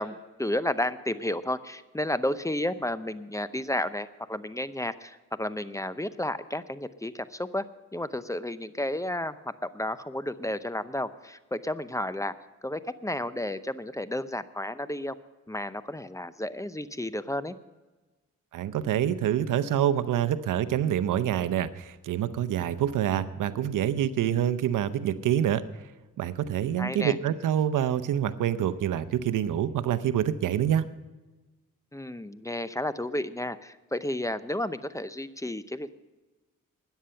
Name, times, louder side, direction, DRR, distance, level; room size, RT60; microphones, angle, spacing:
voice 1, 0.0-12.3 12.6-15.1 15.5-17.5 26.8-27.2 31.9-36.0, left 1 dB, 10° left, 14 dB, 0.7 m, -32 dB
voice 2, 18.5-25.7 26.2-30.9, right 10 dB, 85° right, 13 dB, 0.7 m, -26 dB
13.0 x 10.0 x 5.6 m, 1.2 s
cardioid pair, 65°, 31 cm